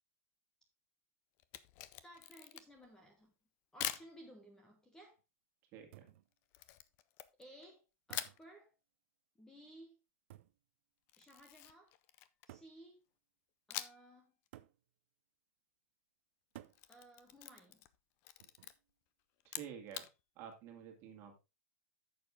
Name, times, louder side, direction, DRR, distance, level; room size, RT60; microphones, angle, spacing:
Camera, 1.4-2.9 3.8-4.1 6.5-7.7 8.1-8.4 11.1-12.6 13.7-14.1 14.5-14.6 16.5-17.9 18.2-18.7 19.4-20.1, left 14 dB, 30° left, 0.5 m, -45 dB
voice 1, 2.0-3.3 3.7-5.2 7.4-8.7 9.4-10.0 11.2-11.9 12.5-13.0 13.7-14.3 16.9-17.8, right 1 dB, 5° left, 3 dB, 1.1 m, -58 dB
sound 1, 3.8-4.2 5.2-5.3 5.9-6.3 8.1-8.5 10.3-10.6 11.6-11.7 12.5-12.8 14.5-14.8 16.5-16.9 18.4-18.8, right 14 dB, 55° right, 0.6 m, -55 dB
voice 2, 5.7-6.1 19.4-20.0 20.4-21.3, right 8 dB, 30° right, 3 dB, 2.2 m, -50 dB
9.4 x 6.8 x 3.6 m, 0.27 s
supercardioid pair, 175°, 8 cm